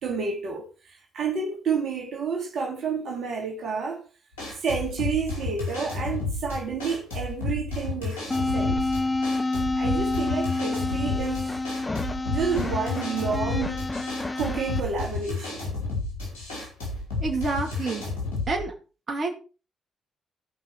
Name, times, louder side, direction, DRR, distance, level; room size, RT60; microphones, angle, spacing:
voice 1, 0.0-4.0 4.5-8.8 9.5-11.6 12.3-13.9 14.4-15.7, right 5 dB, 60° right, 2.6 m, -30 dB
sound 1, 4.3-18.6, left 3 dB, 85° left, 4.8 m, -32 dB
sound 2, 8.3-14.8, left 2 dB, 25° left, 1.8 m, -28 dB
voice 2, 17.2-18.1 18.5-18.7 19.1-19.3, right 3 dB, 45° right, 2.5 m, -28 dB
16.0 x 5.7 x 4.6 m
hypercardioid pair, 45°, 0 cm